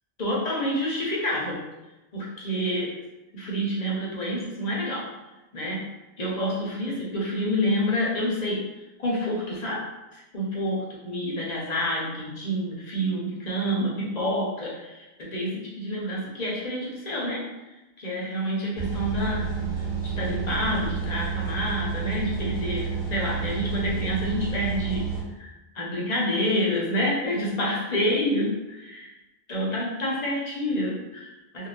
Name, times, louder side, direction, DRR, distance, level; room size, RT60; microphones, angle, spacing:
voice 1, 0.2-1.6 2.1-3.0 3.3-5.1 5.5-5.9 6.2-9.9 10.1-17.5 18.0-25.1 25.4-29.1 29.5-31.7, equal, 45° left, -4 dB, 0.7 m, -28 dB
sound 1, 18.7-25.2, right 6 dB, 5° right, 0.8 m, -30 dB
2.6 x 2.1 x 3.2 m, 1.0 s
omnidirectional pair, 1.2 m